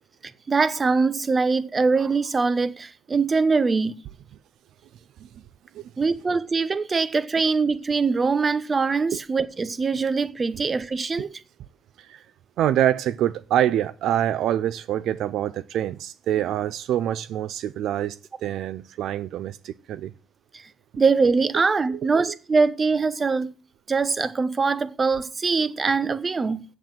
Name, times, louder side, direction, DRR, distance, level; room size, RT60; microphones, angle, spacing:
voice 1, 0.5-3.9 6.0-11.3 20.5-20.6 21.0-23.5 23.9-26.6, right 4 dB, 35° right, 0.9 m, -23 dB
voice 2, 12.6-20.1 21.9-22.4, right 11 dB, 80° right, 0.4 m, -26 dB
7.8 x 7.1 x 7.4 m
cardioid pair, 90°, 0 cm